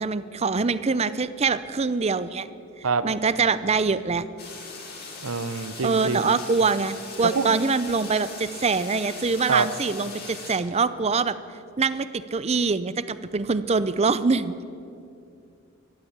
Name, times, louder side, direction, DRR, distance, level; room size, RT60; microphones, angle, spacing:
voice 1, 0.0-2.5 2.8-4.2 5.8-11.3 11.8-14.5, right 4 dB, 30° right, 15 dB, 0.5 m, -24 dB
sound 1, 4.4-10.6, left 4 dB, 50° left, 3.0 m, -40 dB
voice 2, 5.2-6.3 7.2-7.5 9.5-9.7, right 4 dB, 80° right, 13 dB, 0.8 m, -25 dB
13.5 x 12.0 x 8.8 m, 2.4 s
head